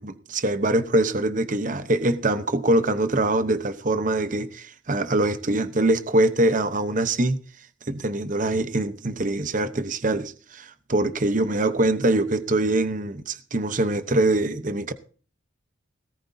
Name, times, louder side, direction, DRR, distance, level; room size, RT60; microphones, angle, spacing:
voice 1, 0.0-7.4 7.9-14.9, right 2 dB, 40° right, 0.9 m, -23 dB
18.0 x 14.5 x 2.7 m
head